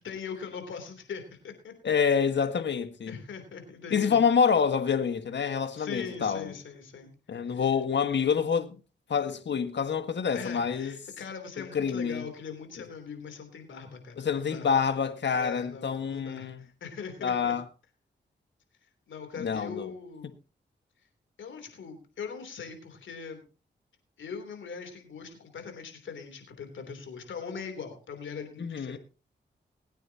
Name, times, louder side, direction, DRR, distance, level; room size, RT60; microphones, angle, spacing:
voice 1, 0.0-1.9 3.1-4.2 5.7-7.1 7.5-7.6 10.3-14.7 15.3-17.5 19.1-20.4 21.4-23.4 24.2-29.0, left 6 dB, 85° left, 3.3 m, -41 dB
voice 2, 1.8-3.1 3.9-6.5 7.3-8.8 9.1-10.9 11.7-12.2 14.2-16.6 17.2-17.6 19.4-19.9 28.6-29.0, left 6 dB, 70° left, 1.6 m, -27 dB
21.0 x 9.2 x 2.9 m
cardioid pair, 45°, 19 cm